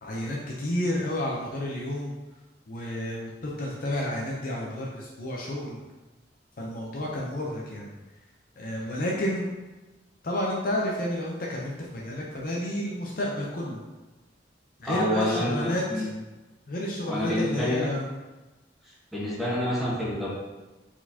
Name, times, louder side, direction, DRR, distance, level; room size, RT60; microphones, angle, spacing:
voice 1, 0.0-2.1 2.7-5.8 6.6-7.9 8.6-9.5 10.2-13.8 14.8-16.1 16.7-18.1, left 1 dB, 50° left, -3 dB, 0.6 m, -30 dB
voice 2, 14.8-16.1 17.1-17.9 19.1-20.3, equal, ahead, -9 dB, 1.4 m, -28 dB
4.5 x 4.2 x 2.8 m, 1.1 s
head